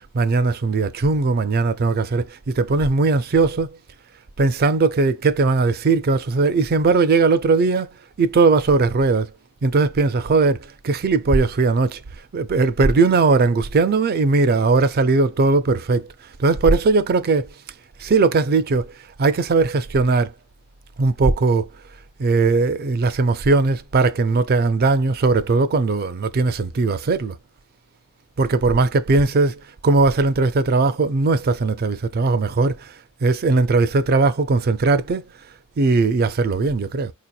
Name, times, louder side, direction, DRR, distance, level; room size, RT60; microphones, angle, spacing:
voice 1, 0.1-3.8 4.4-7.9 8.2-9.3 9.6-12.0 12.3-16.1 16.4-17.5 18.0-18.9 19.2-20.3 21.0-21.7 22.2-27.4 28.4-32.9 33.2-35.3 35.8-37.1, right 3 dB, 45° right, 0.4 m, -19 dB
4.4 x 2.9 x 2.3 m
head